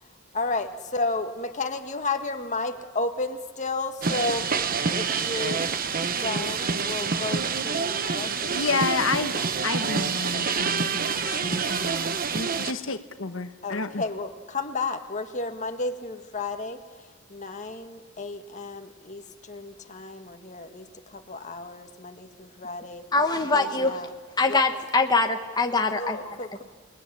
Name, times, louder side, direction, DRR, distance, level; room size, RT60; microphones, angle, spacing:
voice 1, 0.0-5.7 6.2-9.5 9.8-10.3 13.6-23.1 23.5-24.1 24.5-24.6 25.9-26.6, left 3 dB, 35° left, 6 dB, 1.8 m, -33 dB
sound 1, 4.0-12.7, right 5 dB, 45° right, 1.1 m, -27 dB
voice 2, 8.5-9.3 9.6-14.0, left 4 dB, 70° left, 8 dB, 1.3 m, -30 dB
voice 3, 23.1-23.9 24.4-26.2, left 3 dB, 20° left, 4 dB, 1.3 m, -23 dB
29.0 x 19.5 x 9.9 m, 1.5 s
head